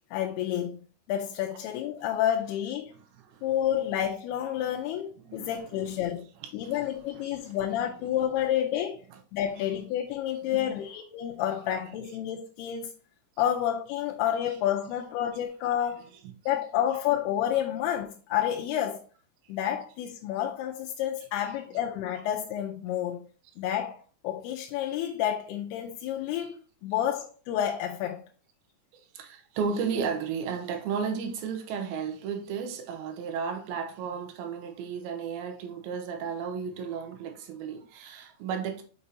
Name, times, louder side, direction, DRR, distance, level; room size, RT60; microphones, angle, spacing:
voice 1, 0.1-0.8 1.1-2.9 3.4-6.3 6.5-9.0 9.3-12.9 13.4-16.1 16.5-19.0 19.5-23.3 23.6-28.2, left 10 dB, 85° left, 2.6 m, -29 dB
voice 2, 5.3-5.8 6.6-6.9 7.1-7.5 10.5-10.8 29.1-38.8, right 6 dB, 75° right, 2.6 m, -34 dB
6.5 x 5.4 x 2.8 m
omnidirectional pair, 4.7 m